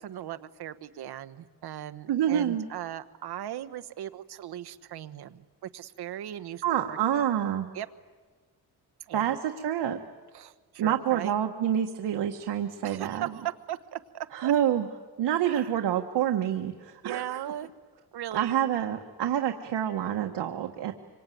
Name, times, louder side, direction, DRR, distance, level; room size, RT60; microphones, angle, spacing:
voice 1, 0.0-7.2 7.7-7.9 9.1-9.4 10.3-11.4 12.8-14.5 15.4-15.7 17.0-17.7 18.1-18.6, right 11 dB, 70° right, 11 dB, 1.2 m, -38 dB
voice 2, 2.1-2.7 6.6-7.7 9.1-10.0 10.8-13.3 14.3-14.9 15.2-17.4 18.3-20.9, right 10 dB, 90° right, 4 dB, 1.5 m, -27 dB
26.0 x 25.0 x 9.3 m, 1.4 s
cardioid pair, 130°, 40 cm